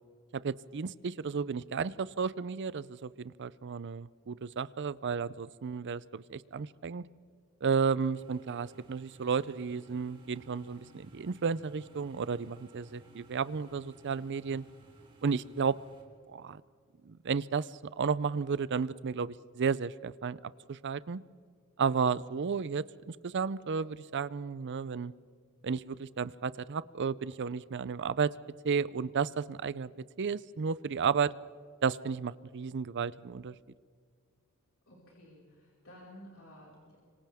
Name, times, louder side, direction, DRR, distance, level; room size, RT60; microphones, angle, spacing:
voice 1, 0.3-7.0 7.6-14.6 15.2-15.8 16.3-16.6 17.1-21.2 21.8-25.1 25.6-28.3 28.6-29.9 30.2-31.3 31.8-33.5, right 6 dB, 55° right, 18 dB, 0.5 m, -33 dB
sound 1, 8.1-16.0, right 1 dB, 25° right, 3.9 m, -58 dB
voice 2, 34.9-37.0, equal, 70° left, -5 dB, 5.0 m, -53 dB
30.0 x 25.5 x 3.6 m, 2.1 s
head